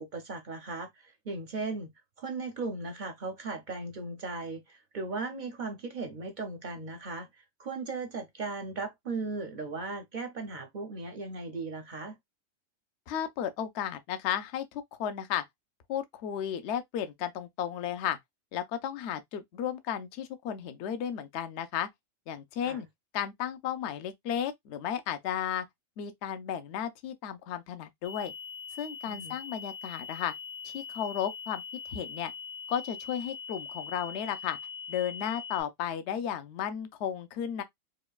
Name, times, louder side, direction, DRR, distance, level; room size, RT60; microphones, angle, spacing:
voice 1, 0.0-1.9 2.2-12.2 22.6-22.9 29.0-29.4, right 3 dB, 50° right, 0.6 m, -37 dB
voice 2, 13.1-15.4 15.9-18.2 18.5-21.9 22.3-22.9 23.1-25.7 26.0-28.3 28.8-30.3 30.6-31.6 31.9-32.3 32.7-34.6 34.9-37.6, left 9 dB, 65° left, 0.8 m, -34 dB
sound 1, 28.0-35.6, left 6 dB, 85° left, 1.1 m, -42 dB
5.0 x 2.2 x 2.3 m
omnidirectional pair, 1.4 m